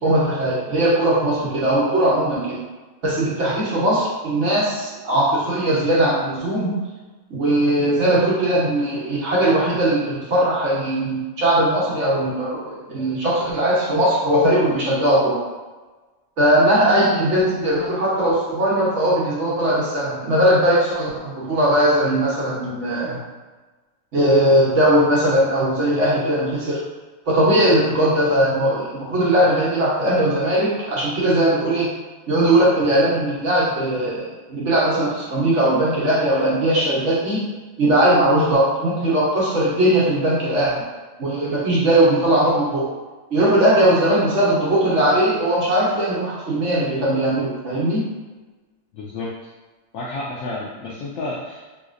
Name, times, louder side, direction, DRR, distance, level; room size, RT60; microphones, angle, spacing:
voice 1, 0.0-2.6 3.0-6.7 7.3-15.4 16.4-23.2 24.1-26.8 27.3-31.9 32.3-37.4 37.8-40.8 41.2-42.9 43.3-48.0, right 1 dB, 60° right, -7 dB, 1.2 m, -19 dB
voice 2, 48.9-49.3 49.9-51.8, left 2 dB, 75° left, -6 dB, 1.0 m, -31 dB
3.2 x 2.9 x 2.5 m, 1.2 s
omnidirectional pair, 1.4 m